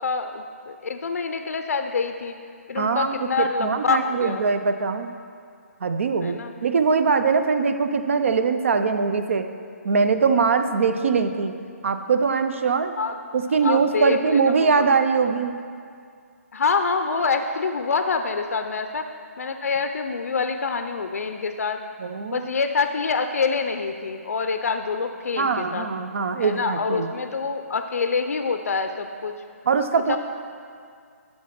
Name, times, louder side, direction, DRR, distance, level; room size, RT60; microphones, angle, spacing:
voice 1, 0.0-2.4 2.7-4.4 6.2-6.5 13.0-13.2 13.6-14.9 16.5-19.1 19.4-21.8 22.3-25.9 26.4-29.3 29.9-30.2, left 4 dB, 70° left, 7 dB, 0.5 m, -26 dB
voice 2, 2.8-5.1 5.8-9.5 9.8-11.5 11.8-12.9 13.3-15.6 22.0-22.5 25.4-27.1 29.7-30.2, right 5 dB, 55° right, 9 dB, 0.6 m, -22 dB
12.5 x 4.2 x 5.9 m, 2.3 s
hypercardioid pair, 165°, 8 cm